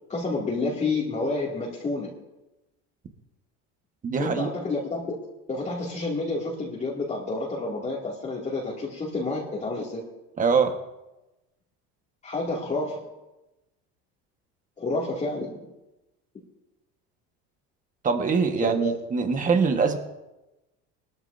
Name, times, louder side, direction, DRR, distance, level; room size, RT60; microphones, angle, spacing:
voice 1, 0.1-2.1 4.2-5.2 5.5-10.0 12.2-13.0 14.8-15.6 18.6-18.9, left 2 dB, 25° left, -5 dB, 2.4 m, -29 dB
voice 2, 4.0-4.5 10.4-10.8 18.0-20.0, right 5 dB, 25° right, 6 dB, 1.4 m, -23 dB
20.5 x 13.5 x 2.7 m, 1.0 s
cardioid pair, 135°, 31 cm